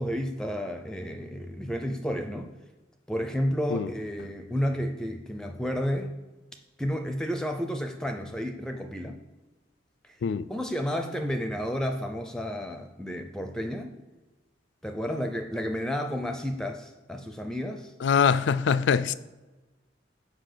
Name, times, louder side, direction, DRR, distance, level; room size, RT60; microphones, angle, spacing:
voice 1, 0.0-2.5 3.1-6.1 6.8-9.2 10.0-10.2 10.5-13.9 14.8-17.9, equal, 5° left, 0.4 m, -31 dB
voice 2, 18.0-19.1, left 6 dB, 70° left, 0.3 m, -23 dB
6.1 x 4.9 x 6.7 m
head